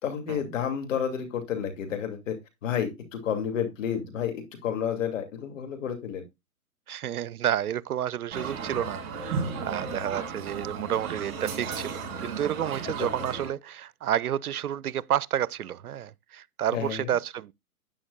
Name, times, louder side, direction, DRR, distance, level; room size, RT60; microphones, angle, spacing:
voice 1, 0.0-2.4 2.6-6.2 12.8-13.1 16.7-17.1, left 8 dB, 55° left, 2.7 m, -30 dB
voice 2, 6.9-17.5, right 10 dB, 75° right, 0.7 m, -30 dB
sound 1, 8.3-13.5, right 5 dB, 35° right, 6.1 m, -34 dB
11.5 x 9.2 x 2.3 m
hypercardioid pair, 130°, 45 cm